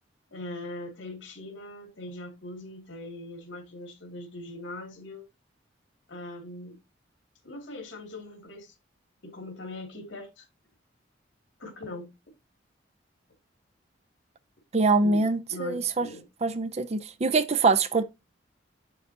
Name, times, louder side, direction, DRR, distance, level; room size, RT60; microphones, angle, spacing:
voice 1, 0.3-5.2 6.1-6.8 7.4-8.7 9.2-10.5 11.6-12.1 15.0-16.2, left 1 dB, 70° left, 2.5 m, -41 dB
voice 2, 14.7-16.1 16.4-18.0, right 3 dB, 35° right, 0.5 m, -24 dB
7.5 x 6.6 x 2.8 m
head